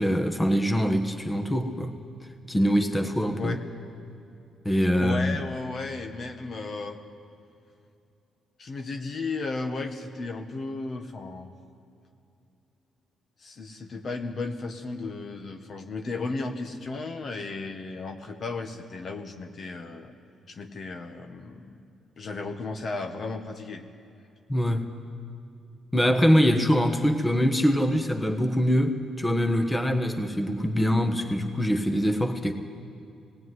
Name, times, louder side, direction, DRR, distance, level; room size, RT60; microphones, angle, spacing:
voice 1, 0.0-1.9 2.5-3.6 4.6-5.4 24.5-24.9 25.9-32.5, equal, 15° left, 6 dB, 1.3 m, -23 dB
voice 2, 5.0-7.0 8.6-11.5 13.4-20.1 20.5-21.8 22.2-23.8, left 3 dB, 50° left, 6 dB, 1.3 m, -34 dB
18.5 x 16.0 x 9.6 m, 2.6 s
cardioid pair, 90°, 0 cm